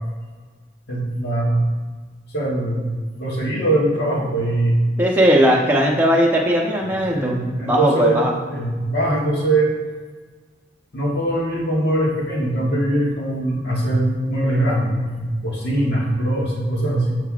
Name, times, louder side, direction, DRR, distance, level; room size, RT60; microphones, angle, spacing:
voice 1, 0.9-1.7 2.3-2.8 3.2-4.8 7.1-8.2 8.5-9.7 10.9-17.2, right 1 dB, 65° left, -4 dB, 1.7 m, -21 dB
voice 2, 5.0-8.3, equal, 10° right, -2 dB, 0.8 m, -18 dB
7.6 x 5.7 x 2.5 m, 1.4 s
head